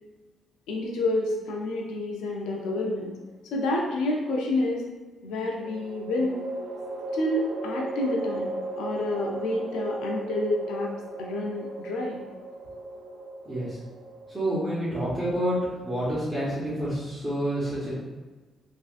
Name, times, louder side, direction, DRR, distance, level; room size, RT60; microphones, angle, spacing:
voice 1, 0.7-3.1 3.5-4.8 5.2-6.4 7.1-8.5 8.8-10.9 11.2-12.2, left 2 dB, 90° left, 0 dB, 0.4 m, -28 dB
sound 1, 2.5-3.3 5.6-16.9, right 2 dB, 85° right, 0.4 m, -37 dB
voice 2, 13.4-13.8 14.3-15.6 15.8-17.9, right 1 dB, 15° right, -11 dB, 1.1 m, -28 dB
3.2 x 2.5 x 2.4 m, 1.3 s
cardioid pair, 70°, 0 cm